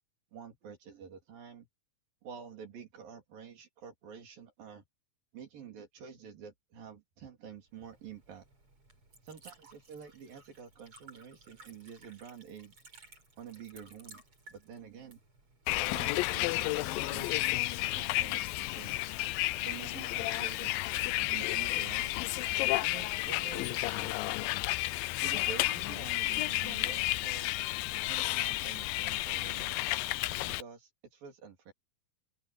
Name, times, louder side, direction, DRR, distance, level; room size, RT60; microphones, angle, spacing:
voice 1, 0.3-1.7 2.2-4.8 5.3-8.5 9.2-12.7 13.4-14.2 14.5-15.2 15.9-17.5 17.9-19.1 19.7-22.1 22.8-24.3 25.2-27.5 28.1-29.9 30.5-31.7, right 7 dB, 80° right, 5.4 m, -48 dB
Liquid, 7.7-16.2, right 3 dB, 40° right, 7.4 m, -58 dB
Bus, 15.7-30.6, left 18 dB, 85° left, 2.4 m, -32 dB
open air
omnidirectional pair, 4.0 m